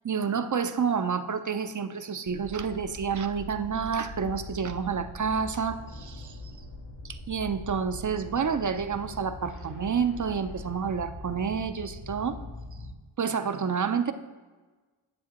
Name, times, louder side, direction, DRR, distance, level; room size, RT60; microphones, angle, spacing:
voice 1, 0.0-6.4 7.1-12.4 13.2-14.1, right 6 dB, 40° right, 10 dB, 0.5 m, -29 dB
sound 1, 2.3-12.9, left 1 dB, 85° left, 1.8 m, -42 dB
9.9 x 8.1 x 2.9 m, 1.3 s
wide cardioid pair, 70°, 49 cm